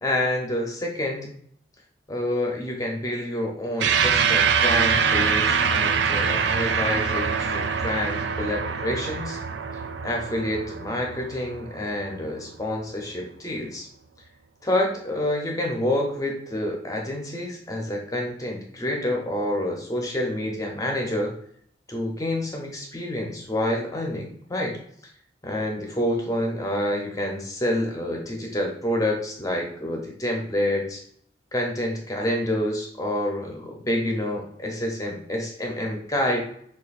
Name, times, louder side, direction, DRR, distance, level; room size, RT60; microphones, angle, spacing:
voice 1, 0.0-1.3 2.1-9.4 10.0-13.9 14.6-21.3 21.9-24.8 25.4-31.0 31.5-36.4, left 1 dB, 20° left, 0 dB, 0.7 m, -28 dB
sound 1, 3.8-12.5, right 6 dB, 70° right, 0.4 m, -24 dB
6.6 x 2.6 x 2.4 m, 0.65 s
head